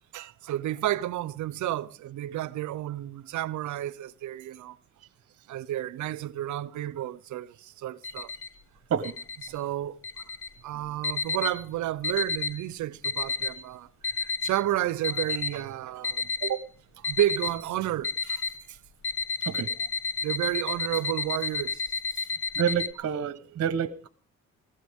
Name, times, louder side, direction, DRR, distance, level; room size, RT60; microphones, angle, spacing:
voice 1, 0.1-4.8 5.5-8.3 9.5-10.2 10.6-16.3 17.0-18.8 20.2-22.3, right 13 dB, 70° right, 0.7 m, -31 dB
sound 1, 8.0-8.5 9.0-9.5 10.0-10.5 11.0-11.6 12.0-12.6 13.0-13.6 14.0-14.6 15.0-15.6 16.0-16.6 17.0-17.6 18.0-18.6 19.0-22.9, left 4 dB, 45° left, 1.2 m, -31 dB
voice 2, 22.5-24.1, right 8 dB, 55° right, 1.1 m, -29 dB
19.5 x 15.5 x 3.6 m
cardioid pair, 90°, 30 cm